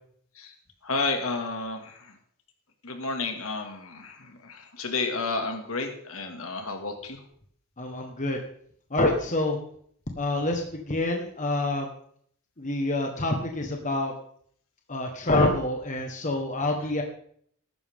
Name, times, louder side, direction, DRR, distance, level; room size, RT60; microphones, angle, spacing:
voice 1, 0.8-2.2 2.8-7.2, left 3 dB, 70° left, 4 dB, 2.2 m, -31 dB
voice 2, 7.8-8.4 8.9-9.6 10.2-11.9 12.6-14.1 14.9-17.0, left 2 dB, 35° left, 2 dB, 1.4 m, -27 dB
14.5 x 12.0 x 3.7 m, 0.63 s
head